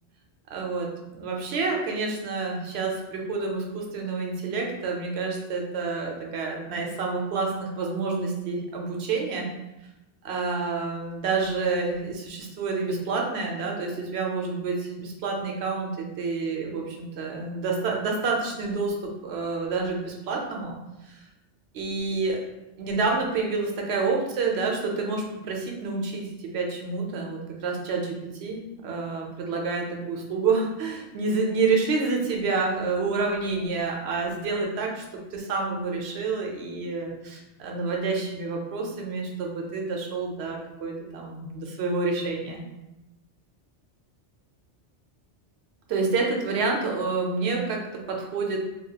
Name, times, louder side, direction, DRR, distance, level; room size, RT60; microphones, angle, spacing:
voice 1, 0.5-9.5 10.2-20.8 21.0-21.2 21.7-22.4 22.8-35.0 35.3-42.6 45.9-48.6, right 4 dB, 70° right, 0 dB, 0.8 m, -28 dB
2.9 x 2.3 x 2.8 m, 0.97 s
omnidirectional pair, 1.2 m